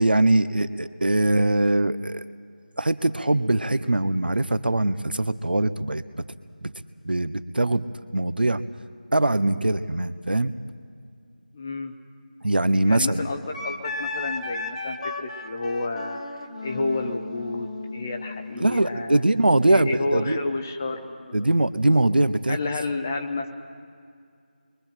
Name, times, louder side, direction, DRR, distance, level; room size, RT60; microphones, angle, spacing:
voice 1, 0.0-2.3 2.8-6.0 6.6-6.7 7.0-7.8 8.1-8.6 9.1-10.5 12.4-13.2 18.6-20.4 21.3-22.6, right 2 dB, 80° right, 14 dB, 0.9 m, -22 dB
voice 2, 11.5-11.9 12.8-16.2 16.6-19.2 19.7-21.5 22.5-23.5, left 3 dB, 15° left, 6 dB, 0.7 m, -30 dB
Wind instrument woodwind instrument, 13.5-18.9, left 3 dB, 40° left, 1.5 m, -34 dB
29.0 x 23.0 x 4.5 m, 2.3 s
figure-of-eight pair, 170°, 5 cm